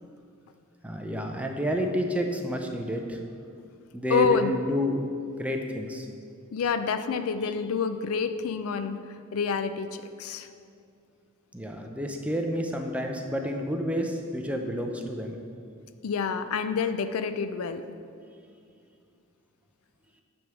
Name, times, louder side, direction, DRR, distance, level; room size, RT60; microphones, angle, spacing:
voice 1, 0.8-3.2 3.9-5.0 5.4-6.0 11.5-15.4, equal, 5° right, 3 dB, 0.5 m, -29 dB
voice 2, 4.1-4.6 6.5-9.0 9.3-9.9 10.2-10.5 16.0-17.8, left 5 dB, 75° left, 10 dB, 0.4 m, -27 dB
9.2 x 3.5 x 6.2 m, 2.4 s
head